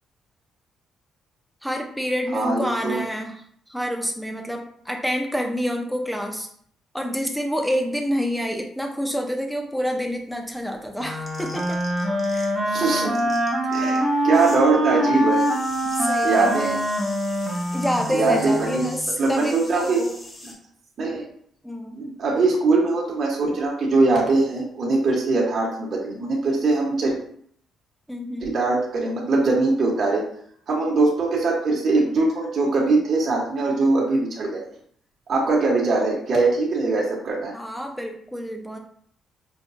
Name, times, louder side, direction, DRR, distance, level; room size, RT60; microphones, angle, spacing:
voice 1, 1.6-6.5 6.9-11.8 12.3-12.6 13.6-14.2 15.8-16.8 17.7-20.1 21.6-22.0 28.1-28.6 37.5-38.8, equal, ahead, 3 dB, 0.6 m, -28 dB
voice 2, 2.3-3.0 12.7-13.2 13.7-15.4 16.2-16.8 18.1-18.8 19.2-20.0 21.0-21.2 21.9-27.1 28.4-30.2 30.7-34.6 35.3-37.5, right 3 dB, 55° right, -3 dB, 1.1 m, -21 dB
sound 1, 10.1-12.7 13.0-14.6 14.9-20.5, left 1 dB, 30° left, 1.1 m, -43 dB
Wind instrument woodwind instrument, 11.0-19.1, right 1 dB, 25° right, 0.8 m, -24 dB
5.1 x 2.3 x 2.6 m, 0.62 s
cardioid pair, 90°, 0 cm